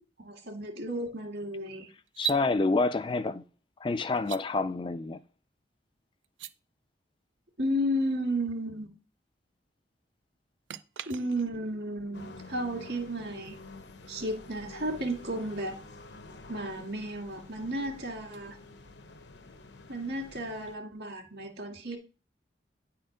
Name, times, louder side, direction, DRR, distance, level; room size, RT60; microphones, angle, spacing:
voice 1, 0.2-1.9 7.6-8.9 11.1-13.6 14.1-15.8 16.5-18.6 19.9-22.0, equal, 65° right, 2.0 m, -33 dB
sound 1, 2.1-2.4 4.2-4.4 6.2-6.5 10.7-11.7 14.9-15.0 16.9-19.1, right 10 dB, 85° right, 0.5 m, -40 dB
voice 2, 2.2-3.4 3.8-5.2, left 3 dB, 25° left, 0.3 m, -28 dB
sound 2, 12.1-20.8, left 2 dB, 70° left, 0.9 m, -49 dB
9.9 x 4.4 x 5.0 m
head